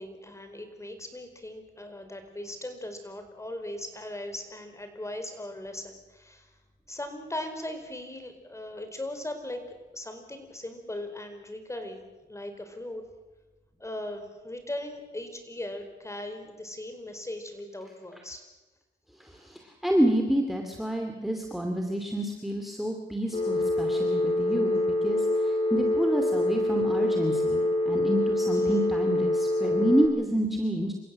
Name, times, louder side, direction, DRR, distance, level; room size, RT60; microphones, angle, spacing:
voice 1, 0.0-6.5 6.9-9.6 9.9-13.0 13.8-18.4 28.6-28.8, left 1 dB, 15° left, 7 dB, 4.5 m, -39 dB
voice 2, 19.2-30.9, equal, ahead, 3 dB, 2.6 m, -28 dB
Telephone, 23.3-30.1, left 1 dB, 30° left, 4.4 m, -26 dB
28.0 x 15.5 x 7.6 m, 1.2 s
cardioid pair, 90°, 20 cm